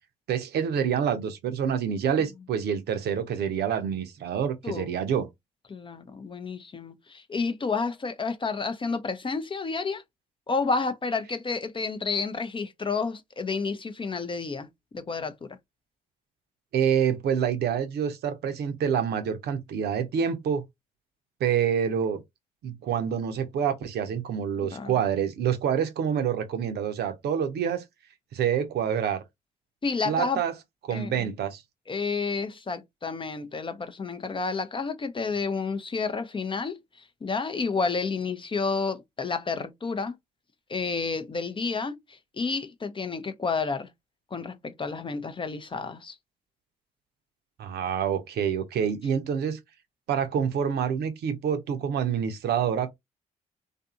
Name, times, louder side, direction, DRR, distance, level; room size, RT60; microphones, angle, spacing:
voice 1, 0.3-5.3 16.7-20.6 21.4-22.2 22.6-27.8 28.3-29.2 30.0-30.5 30.8-31.6 47.6-49.6 50.1-52.9, right 8 dB, 65° right, 0.6 m, -27 dB
voice 2, 5.7-10.0 10.5-14.7 14.9-15.6 24.6-24.9 29.8-30.4 30.9-31.3 31.9-36.8 37.2-40.1 40.7-43.9 44.3-46.2, left 4 dB, 30° left, 0.5 m, -30 dB
2.6 x 2.5 x 2.4 m
hypercardioid pair, 45°, 18 cm